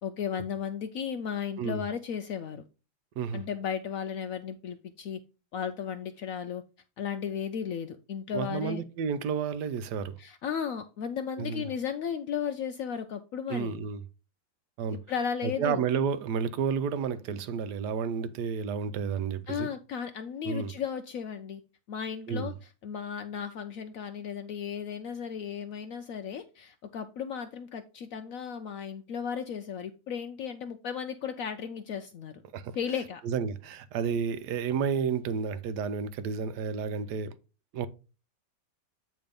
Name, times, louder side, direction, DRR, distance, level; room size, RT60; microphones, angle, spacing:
voice 1, 0.0-2.6 3.3-5.2 5.5-6.6 7.0-8.8 10.2-13.8 15.1-15.8 19.5-21.6 21.9-32.4 32.8-33.2, left 7 dB, 85° left, 0.7 m, -35 dB
voice 2, 8.3-10.2 11.4-11.7 13.5-14.0 14.8-15.0 15.4-19.7 20.4-20.7 22.3-22.5 32.5-32.8 33.2-37.3 37.7-37.9, right 6 dB, 70° right, 1.1 m, -31 dB
8.9 x 3.1 x 5.1 m
omnidirectional pair, 2.0 m